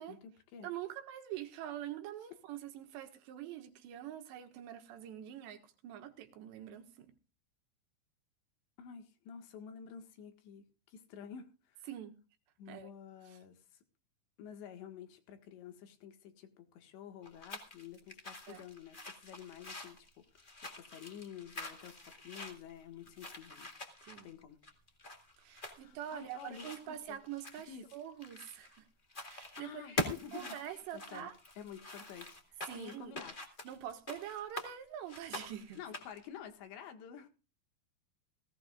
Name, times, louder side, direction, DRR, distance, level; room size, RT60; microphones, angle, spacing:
voice 1, 0.0-0.7 8.8-11.9 12.6-13.8 14.4-23.7 24.2-24.6 25.7-27.2 27.6-27.9 29.1-31.3 31.6-33.4 35.8-37.3, left 8 dB, 85° left, 4.0 m, -50 dB
voice 2, 0.6-7.1 11.9-12.2 12.7-12.9 13.3-13.4 18.5-18.6 24.0-24.3 25.4-28.9 29.2-30.0 30.3-31.4 32.7-33.2 33.7-35.8, right 11 dB, 80° right, 3.7 m, -45 dB
sound 1, 17.2-28.8 29.1-29.6 30.0-34.7 35.1-36.3, left 1 dB, 45° left, 0.6 m, -44 dB
18.5 x 17.0 x 2.5 m
omnidirectional pair, 5.0 m